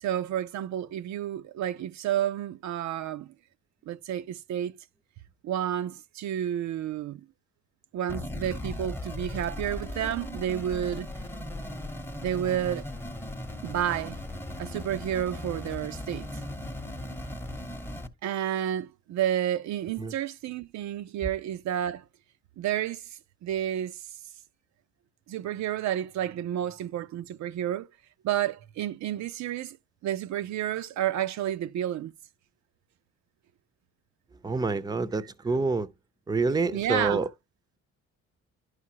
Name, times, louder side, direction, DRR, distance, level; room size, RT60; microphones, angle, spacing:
voice 1, 0.0-3.3 3.9-4.7 5.4-7.2 7.9-11.1 12.2-12.8 13.6-14.2 14.6-16.3 18.2-22.0 22.6-23.1 23.4-24.0 25.3-27.9 28.2-29.8 30.0-32.1 36.7-37.2, right 11 dB, 65° right, 0.5 m, -30 dB
sound 1, 8.1-18.1, left 1 dB, 5° left, 0.9 m, -37 dB
voice 2, 34.4-35.9 36.3-37.3, right 3 dB, 15° right, 0.6 m, -27 dB
11.0 x 4.8 x 2.7 m
cardioid pair, 90°, 30 cm